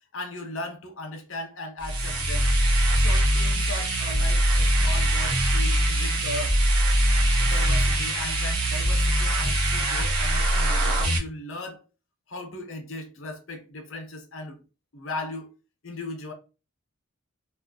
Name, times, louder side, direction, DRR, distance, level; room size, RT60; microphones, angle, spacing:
voice 1, 0.1-2.5 3.0-6.5 7.4-11.8 12.3-14.6 14.9-15.5 15.8-16.3, left 2 dB, 60° left, 0.7 m, -37 dB
sound 1, 1.8-11.2, right 1 dB, 90° right, 0.8 m, -22 dB
2.4 x 2.0 x 3.7 m
head